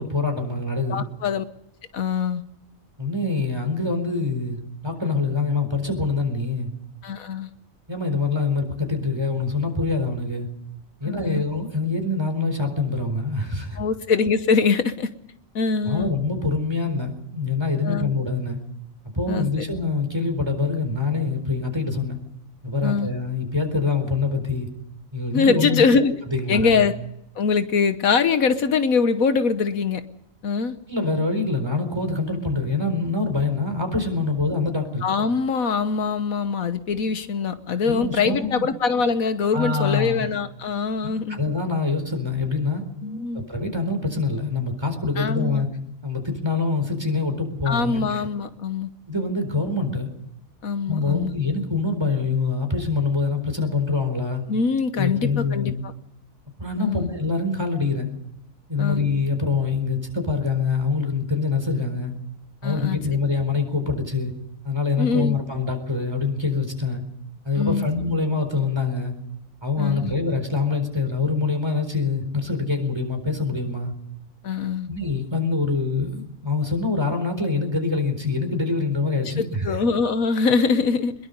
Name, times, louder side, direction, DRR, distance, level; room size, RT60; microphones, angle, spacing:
voice 1, 0.0-1.1 3.0-6.7 7.9-10.5 11.0-13.8 15.9-18.6 19.1-22.2 22.6-24.7 25.1-25.8 26.3-26.9 30.9-35.1 37.9-38.7 39.5-40.3 41.0-42.8 43.3-45.7 46.0-48.1 49.1-50.1 50.9-54.4 54.9-55.8 56.6-58.1 58.7-62.1 62.6-64.3 64.6-67.0 67.4-69.1 69.6-73.9 74.9-79.8, left 4 dB, 20° right, 5 dB, 4.3 m, -25 dB
voice 2, 0.9-1.4 1.9-2.4 7.0-7.5 11.0-11.4 13.8-15.1 15.5-16.1 17.8-18.1 19.3-19.5 22.8-23.1 25.3-26.1 26.5-26.9 27.4-30.0 30.4-30.8 35.0-41.4 43.0-43.4 45.2-45.6 47.7-48.9 50.6-51.3 54.5-55.9 56.8-57.1 58.8-59.0 62.6-63.0 65.0-65.4 67.6-67.9 69.8-70.1 74.4-74.9 79.4-81.1, left 5 dB, 80° left, 10 dB, 1.5 m, -23 dB
23.0 x 22.0 x 5.3 m, 0.80 s
omnidirectional pair, 1.4 m